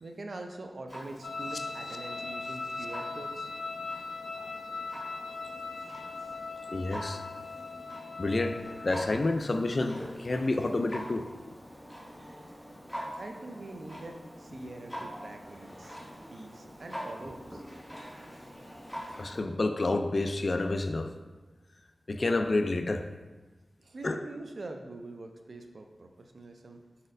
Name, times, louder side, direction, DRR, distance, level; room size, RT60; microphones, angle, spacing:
voice 1, 0.0-3.5 13.1-16.0 16.3-17.6 19.1-19.2 23.8-26.8, right 2 dB, 65° right, 4 dB, 0.4 m, -44 dB
Clock, 0.9-19.4, equal, 10° left, 1.3 m, -45 dB
sound 1, 1.2-9.1, left 4 dB, 90° left, 0.7 m, -39 dB
voice 2, 6.7-7.2 8.2-11.3 19.2-21.1 22.1-23.1 24.0-24.2, left 2 dB, 50° left, 6 dB, 0.3 m, -29 dB
4.9 x 4.1 x 2.6 m, 1.2 s
wide cardioid pair, 70°, 0 cm